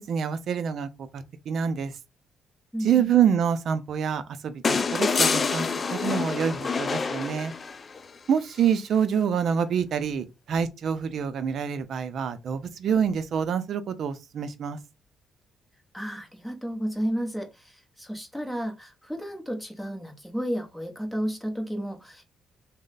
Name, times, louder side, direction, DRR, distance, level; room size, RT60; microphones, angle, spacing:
voice 1, 0.0-1.9 2.8-7.5 8.3-14.8, right 7 dB, 65° right, 0.5 m, -26 dB
voice 2, 2.7-3.1 15.9-22.2, equal, ahead, 0.9 m, -32 dB
sound 1, 4.6-8.0 9.5-9.6, left 5 dB, 35° left, 0.3 m, -26 dB
3.1 x 2.1 x 3.9 m
cardioid pair, 90°, 0 cm